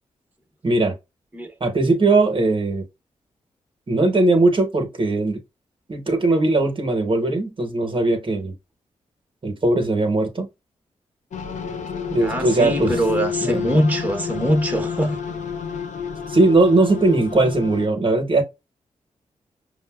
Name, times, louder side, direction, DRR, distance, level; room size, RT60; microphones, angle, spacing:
voice 1, 0.6-0.9 1.6-2.8 3.9-5.4 5.9-8.5 9.4-10.5 12.1-12.9 13.4-13.8 16.3-18.4, right 2 dB, 40° right, 1.0 m, -19 dB
sound 1, 11.3-17.9, left 6 dB, 65° left, 0.6 m, -30 dB
voice 2, 12.2-15.2, equal, 10° right, 0.9 m, -22 dB
5.1 x 2.1 x 2.3 m
supercardioid pair, 45°, 13 cm